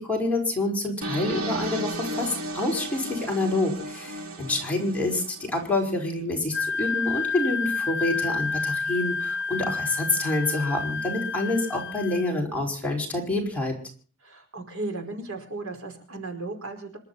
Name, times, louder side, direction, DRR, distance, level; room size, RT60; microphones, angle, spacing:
voice 1, 0.0-13.7, left 2 dB, 5° left, -1 dB, 5.5 m, -27 dB
sound 1, 1.0-5.9, right 1 dB, 80° right, 2.5 m, -34 dB
Wind instrument woodwind instrument, 6.5-12.3, left 4 dB, 55° left, 0.9 m, -30 dB
voice 2, 14.2-17.0, right 2 dB, 65° right, 5 dB, 5.0 m, -35 dB
27.0 x 12.5 x 4.2 m, 0.42 s
head